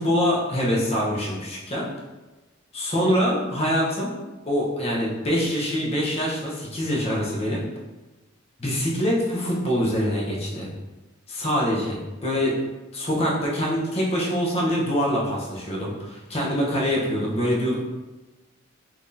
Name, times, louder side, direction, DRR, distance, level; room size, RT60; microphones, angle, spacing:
voice 1, 0.0-1.9 2.7-4.1 4.5-7.6 8.6-10.7 11.3-12.5 12.9-17.8, equal, 30° left, -4 dB, 0.7 m, -24 dB
3.7 x 2.9 x 2.5 m, 1.1 s
head